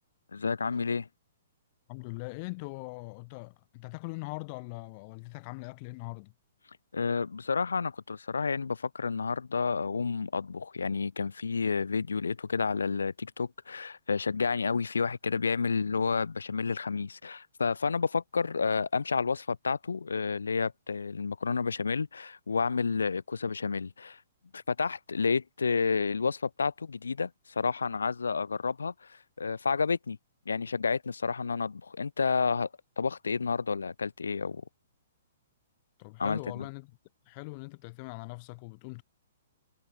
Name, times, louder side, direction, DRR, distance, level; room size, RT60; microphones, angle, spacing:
voice 1, 0.3-1.1 6.9-24.2 24.5-27.3 27.6-28.9 29.4-30.2 30.5-32.7 33.0-34.6 36.2-36.7, left 5 dB, 70° left, 1.0 m, -30 dB
voice 2, 1.9-6.3 36.0-36.9 37.3-39.0, left 28 dB, 35° left, 6.8 m, -41 dB
figure-of-eight pair, 115°, 0 cm